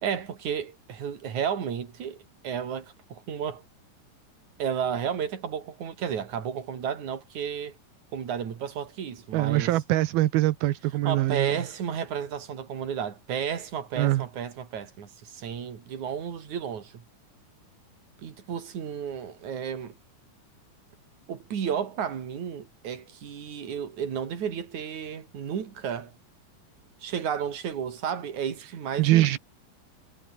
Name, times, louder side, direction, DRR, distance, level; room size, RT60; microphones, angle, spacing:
voice 1, 0.0-3.6 4.6-7.8 8.1-9.8 11.0-17.0 18.2-19.9 21.3-26.1 27.0-29.4, right 8 dB, 55° right, 4.1 m, -32 dB
voice 2, 9.3-11.5 14.0-14.2 29.0-29.4, right 15 dB, 85° right, 2.9 m, -23 dB
omnidirectional pair, 4.3 m